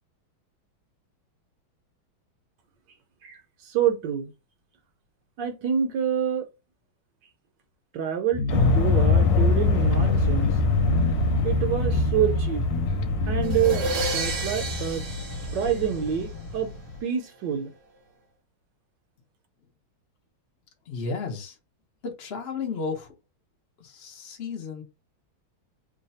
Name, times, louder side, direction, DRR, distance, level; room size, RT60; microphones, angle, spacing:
voice 1, 3.2-4.3 5.4-6.4 7.9-10.6 11.4-12.6 13.3-13.9 14.1-15.1 15.5-16.7 17.0-17.7, right 8 dB, 70° right, 1.2 m, -27 dB
sound 1, 8.3-8.8 9.3-9.4 9.9-10.2 10.4-11.2 12.0-12.1 12.6-13.8, left 3 dB, 85° left, 1.4 m, -29 dB
sound 2, 8.5-16.9, left 3 dB, 70° left, 1.3 m, -24 dB
sound 3, 13.4-16.4, right 2 dB, 55° right, 0.9 m, -32 dB
voice 2, 20.8-21.6 22.0-23.1 23.8-24.8, left 4 dB, 55° left, 0.7 m, -33 dB
3.2 x 2.2 x 4.0 m
omnidirectional pair, 2.2 m